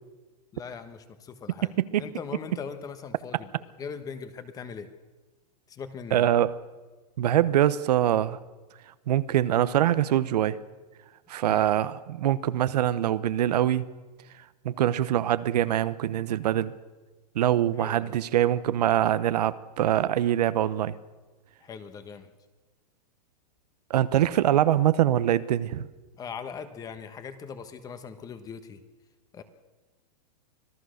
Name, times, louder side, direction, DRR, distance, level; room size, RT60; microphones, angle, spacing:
voice 1, 0.5-1.7 2.0-3.5 3.8-4.9 5.7-6.3 11.4-11.7 17.8-18.2 21.6-22.3 26.2-28.8 29.3-29.4, left 6 dB, 15° left, 10 dB, 1.2 m, -40 dB
voice 2, 6.1-6.6 7.2-8.4 9.1-10.6 11.3-13.9 14.6-16.7 17.3-21.0 23.9-25.9, right 12 dB, 75° right, 15 dB, 1.0 m, -24 dB
25.5 x 16.5 x 6.5 m, 1.3 s
supercardioid pair, 155°, 21 cm